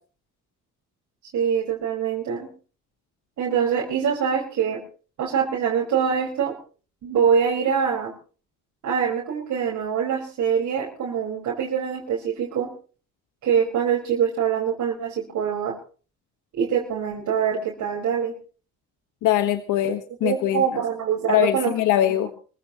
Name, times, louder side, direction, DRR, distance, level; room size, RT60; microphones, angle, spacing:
voice 1, 1.3-2.5 3.4-4.8 5.2-6.6 7.0-8.1 8.8-12.7 13.4-15.8 16.5-18.3 20.2-21.7 22.0-22.1, right 7 dB, 75° right, -2 dB, 5.1 m, -24 dB
voice 2, 19.2-20.8 21.3-22.3, left 12 dB, 90° left, 8 dB, 1.4 m, -22 dB
27.0 x 15.5 x 3.0 m, 0.39 s
cardioid pair, 90°, 30 cm